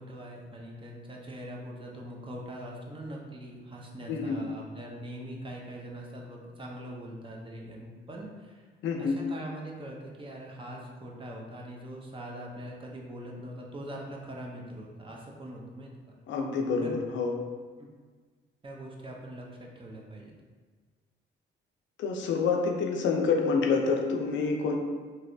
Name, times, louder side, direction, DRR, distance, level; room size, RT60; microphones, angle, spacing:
voice 1, 0.0-8.7 9.0-16.1 16.8-16.9 17.8-17.9 18.6-20.3, right 1 dB, 25° right, -1 dB, 0.6 m, -42 dB
voice 2, 4.1-4.4 8.8-9.2 16.3-17.3 22.0-24.8, left 4 dB, 70° left, 2 dB, 0.5 m, -27 dB
3.1 x 2.8 x 2.6 m, 1.5 s
cardioid pair, 90°, 20 cm